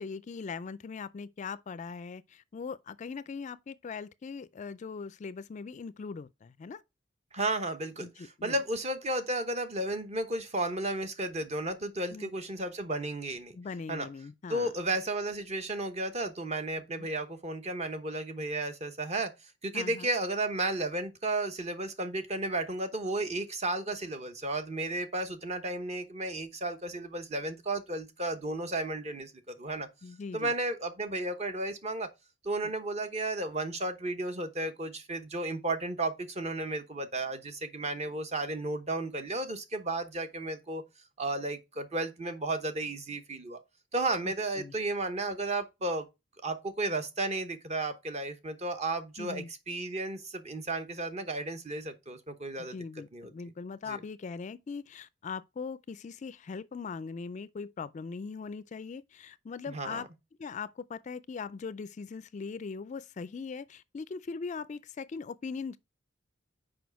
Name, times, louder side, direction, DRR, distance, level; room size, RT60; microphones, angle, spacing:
voice 1, 0.0-6.8 8.0-8.6 12.1-12.3 13.6-14.7 17.0-17.1 19.7-20.1 30.0-30.5 44.2-44.7 49.2-49.5 52.7-60.1 60.4-65.8, left 5 dB, 40° left, 0.3 m, -40 dB
voice 2, 7.3-13.6 13.9-14.1 14.5-19.3 19.6-29.9 30.3-32.1 32.4-40.8 41.2-43.6 43.9-46.1 46.4-52.8 53.1-53.3 53.9-54.0 59.7-60.0, right 2 dB, 35° right, 1.0 m, -33 dB
6.2 x 5.0 x 4.6 m
head